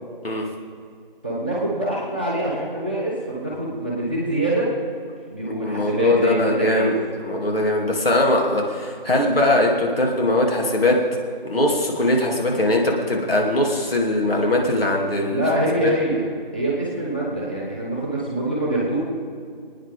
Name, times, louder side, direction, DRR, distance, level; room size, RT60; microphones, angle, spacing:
voice 1, 1.2-4.7 5.3-6.9 15.3-16.2 16.5-19.0, right 1 dB, 10° left, -7 dB, 1.2 m, -24 dB
voice 2, 5.4-11.0 11.4-15.4 15.8-15.9, left 1 dB, 80° left, -1 dB, 3.0 m, -21 dB
27.5 x 9.6 x 3.7 m, 2.2 s
figure-of-eight pair, 180°, 29 cm